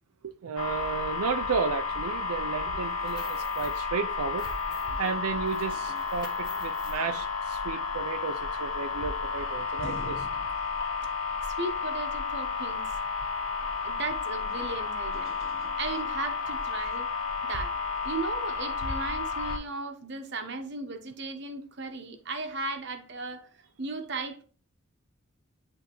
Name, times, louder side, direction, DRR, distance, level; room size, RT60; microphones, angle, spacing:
voice 1, 0.2-4.5 5.0-10.3, right 5 dB, 85° right, 0.5 m, -33 dB
sound 1, 0.6-19.6, left 4 dB, 65° left, 0.9 m, -32 dB
sound 2, 2.8-3.8 4.2-5.1 5.5-7.0, left 2 dB, 20° left, 1.6 m, -48 dB
voice 2, 11.4-13.0 13.8-15.3 15.8-17.1 17.4-17.7 18.0-23.5 23.8-24.4, right 3 dB, 50° right, 1.0 m, -36 dB
10.5 x 3.4 x 3.0 m
head